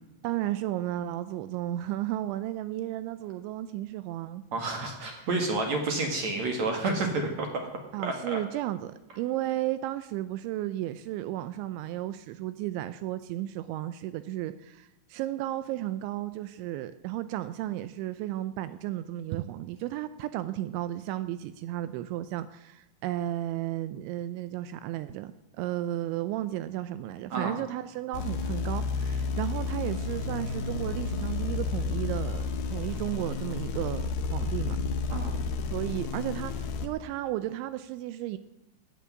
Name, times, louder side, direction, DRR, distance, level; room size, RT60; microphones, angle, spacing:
voice 1, 0.2-4.4 5.2-5.3 7.9-34.8 35.7-38.4, right 14 dB, 85° right, 13 dB, 2.7 m, -34 dB
voice 2, 4.5-7.7 8.0-8.4 27.3-27.5 35.1-35.4, right 3 dB, 60° right, 4 dB, 1.9 m, -30 dB
sound 1, 28.1-36.9, left 4 dB, 70° left, 2.4 m, -31 dB
14.5 x 8.3 x 9.4 m, 0.94 s
omnidirectional pair, 5.8 m